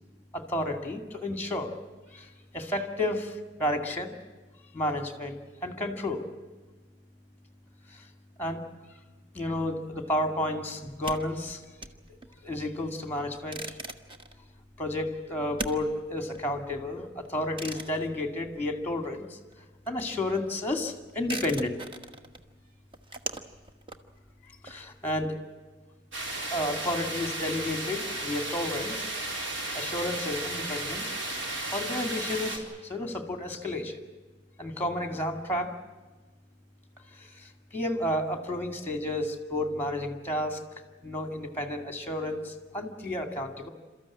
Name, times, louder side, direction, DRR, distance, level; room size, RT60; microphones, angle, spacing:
voice 1, 0.3-1.8 2.1-2.3 2.5-4.2 4.7-6.3 8.4-8.6 9.3-11.6 12.1-12.2 12.4-13.8 14.8-19.3 19.9-21.8 24.6-25.4 26.5-29.1 29.7-31.1 31.7-34.0 34.6-35.8 37.2-40.6 41.0-43.7, left 1 dB, 10° left, 6 dB, 2.4 m, -31 dB
sound 1, 10.8-19.2 19.5-25.2, right 2 dB, 30° right, 1.3 m, -42 dB
sound 2, 26.1-32.6, right 2 dB, 80° right, 3.8 m, -34 dB
28.5 x 14.0 x 9.9 m, 1.3 s
head